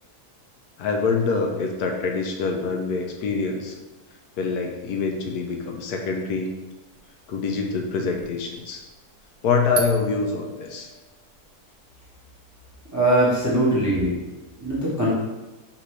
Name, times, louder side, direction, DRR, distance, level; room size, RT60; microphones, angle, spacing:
voice 1, 0.8-3.8 4.4-6.5 7.3-8.8 9.4-10.9, left 4 dB, 80° left, 3 dB, 1.1 m, -25 dB
sound 1, 6.9-7.0 7.5-7.6 7.8-8.4 9.7-11.1, right 1 dB, 75° right, 1.1 m, -30 dB
voice 2, 12.9-14.2 14.6-15.1, right 1 dB, 15° right, -7 dB, 0.7 m, -21 dB
5.2 x 2.6 x 3.1 m, 1.1 s
omnidirectional pair, 1.7 m